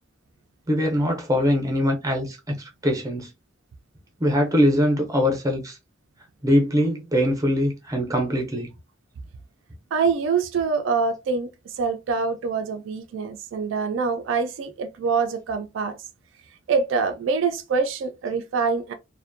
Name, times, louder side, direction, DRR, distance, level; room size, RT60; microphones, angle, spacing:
voice 1, 0.7-2.6 2.8-3.3 4.2-5.8 6.4-8.7, equal, 15° right, 0.5 m, -22 dB
voice 2, 9.9-16.0 16.7-18.9, right 5 dB, 70° right, 0.3 m, -25 dB
2.4 x 2.1 x 2.5 m
head